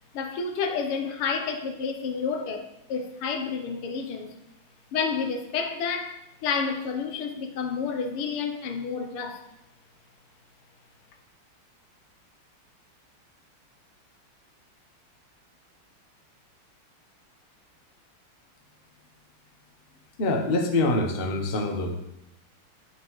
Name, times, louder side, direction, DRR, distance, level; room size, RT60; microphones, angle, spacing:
voice 1, 0.1-4.4 4.9-9.5, left 5 dB, 85° left, 1.8 m, -30 dB
voice 2, 20.2-21.9, left 2 dB, 55° left, 0.6 m, -25 dB
9.0 x 7.0 x 3.1 m
omnidirectional pair, 2.4 m